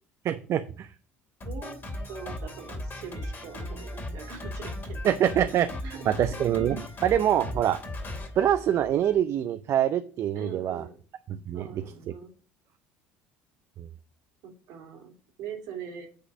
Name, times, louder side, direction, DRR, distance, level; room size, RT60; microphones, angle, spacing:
voice 1, 0.3-0.9 5.0-5.7 6.1-7.8 8.4-10.8 11.3-12.1 13.8-13.9, right 10 dB, 55° right, 11 dB, 0.5 m, -25 dB
Drum kit, 1.4-9.2, left 1 dB, 35° left, 2.7 m, -37 dB
voice 2, 1.4-1.8 2.1-5.0 5.8-6.3 10.3-10.9 11.5-12.3 14.4-16.1, right 7 dB, 70° right, 3 dB, 2.5 m, -42 dB
8.3 x 4.0 x 6.2 m, 0.40 s
hypercardioid pair, 70°, 6 cm